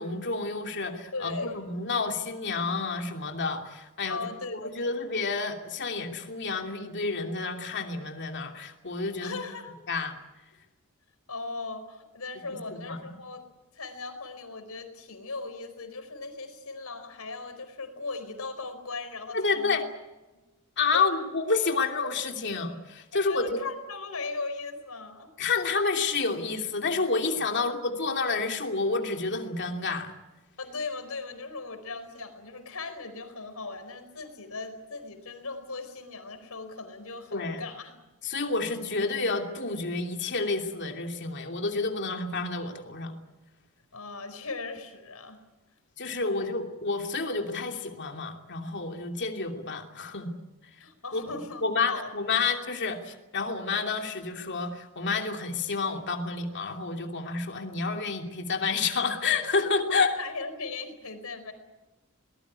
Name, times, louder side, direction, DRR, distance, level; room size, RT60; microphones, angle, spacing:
voice 1, 0.0-9.4 9.9-10.1 12.7-13.1 19.3-19.8 20.8-23.7 25.4-30.1 37.3-37.6 38.2-43.1 46.0-50.3 51.1-51.2 51.6-60.1, left 4 dB, 55° left, 3 dB, 2.9 m, -29 dB
voice 2, 1.1-1.7 4.1-4.9 9.2-9.8 11.3-13.4 13.7-19.8 20.9-21.1 23.1-25.3 27.5-27.7 30.6-38.0 43.9-45.4 46.2-46.5 50.8-52.1 59.9-61.5, left 3 dB, 85° left, 8 dB, 4.6 m, -38 dB
23.0 x 20.0 x 9.7 m, 1.1 s
head